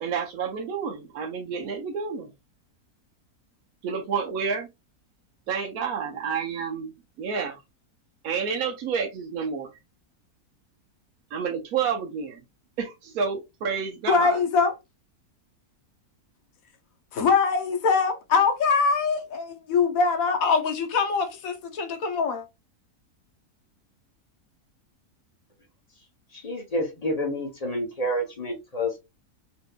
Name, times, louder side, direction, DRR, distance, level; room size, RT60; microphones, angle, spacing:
voice 1, 0.0-2.3 3.8-4.7 5.5-6.9 7.2-7.6 8.2-9.7 11.3-12.4 12.8-14.4, right 6 dB, 70° right, 1.1 m, -29 dB
voice 2, 14.1-14.7 17.1-22.5, left 5 dB, 65° left, 1.1 m, -23 dB
voice 3, 26.3-29.0, equal, 35° left, 0.7 m, -29 dB
4.3 x 3.0 x 2.2 m
omnidirectional pair, 1.6 m